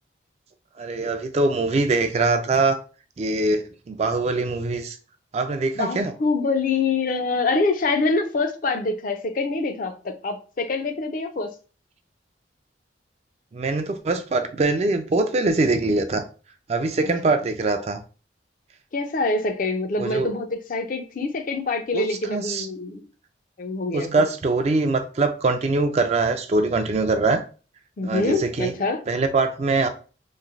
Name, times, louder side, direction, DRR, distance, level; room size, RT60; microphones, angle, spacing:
voice 1, 0.8-2.8 3.2-5.0 5.3-6.1 13.5-16.2 16.7-18.0 20.0-20.3 21.9-22.0 22.3-22.7 23.9-27.4 28.0-28.7 29.1-29.9, right 3 dB, 35° right, 0.3 m, -23 dB
voice 2, 5.7-11.5 17.2-17.3 18.9-23.0 23.6-24.1 28.0-29.0, left 3 dB, 45° left, 0.4 m, -25 dB
3.1 x 2.5 x 2.4 m
head